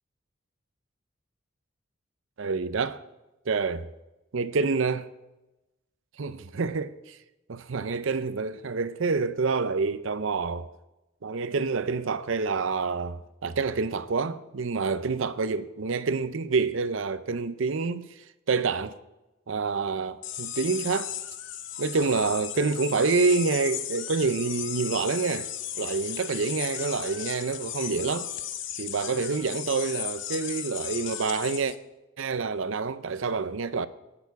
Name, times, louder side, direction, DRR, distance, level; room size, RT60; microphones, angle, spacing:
voice 1, 2.4-3.0 3.5-3.9 4.3-5.1 6.2-7.2 7.5-10.7 11.2-18.1 18.5-19.0 19.5-21.1 21.8-25.5 25.8-28.3 28.8-31.7 32.2-33.9, right 4 dB, 75° right, 0.6 m, -27 dB
sound 1, 20.2-31.8, left 11 dB, 65° left, 0.8 m, -36 dB
19.0 x 6.8 x 4.7 m
head